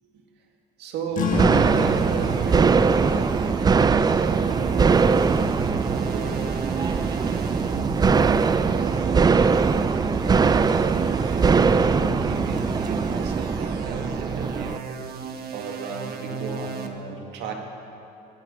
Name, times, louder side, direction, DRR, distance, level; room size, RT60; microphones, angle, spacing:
voice 1, 0.8-9.7 10.2-17.5, right 5 dB, 85° right, 2 dB, 2.0 m, -36 dB
sound 1, 1.1-6.2, left 3 dB, 50° left, 1.6 m, -32 dB
sound 2, 1.3-14.8, right 5 dB, 25° right, 0.5 m, -21 dB
sound 3, 1.5-16.9, right 4 dB, 65° right, 1.3 m, -35 dB
17.0 x 11.0 x 6.6 m, 2.7 s
cardioid pair, 110°, 17 cm